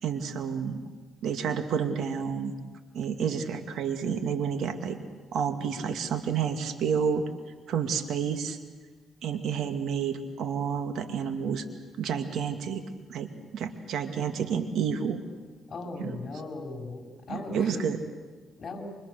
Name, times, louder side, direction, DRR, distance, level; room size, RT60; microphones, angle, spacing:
voice 1, 0.0-0.8 1.2-2.5 2.9-5.0 5.3-7.2 7.7-8.6 9.2-11.6 12.0-12.8 13.1-15.2 16.0-16.1 17.3-18.0, right 7 dB, 75° right, 8 dB, 2.3 m, -30 dB
voice 2, 15.7-17.8 18.6-18.8, left 3 dB, 40° left, 2 dB, 5.5 m, -38 dB
29.5 x 24.5 x 6.8 m, 1.4 s
cardioid pair, 90°, 0 cm